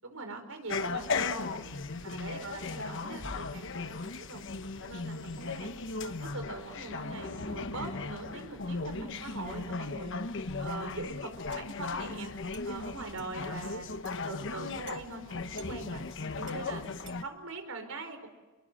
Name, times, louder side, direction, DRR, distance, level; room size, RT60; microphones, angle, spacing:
voice 1, 0.0-1.7 2.0-4.4 4.8-5.7 6.0-10.1 10.6-12.3 12.6-13.9 14.1-16.0 16.3-16.9 17.2-18.3, right 3 dB, 75° right, 7 dB, 5.2 m, -42 dB
sound 1, 0.7-17.2, left 3 dB, 60° left, 1.2 m, -37 dB
sound 2, 11.5-11.7 12.5-12.7 13.2-13.3 14.1-14.2 14.9-15.0 15.6-15.7 16.1-16.2 16.5-16.6 17.1-17.2, right 12 dB, 60° right, 1.6 m, -52 dB
29.5 x 22.0 x 7.7 m, 1.2 s
head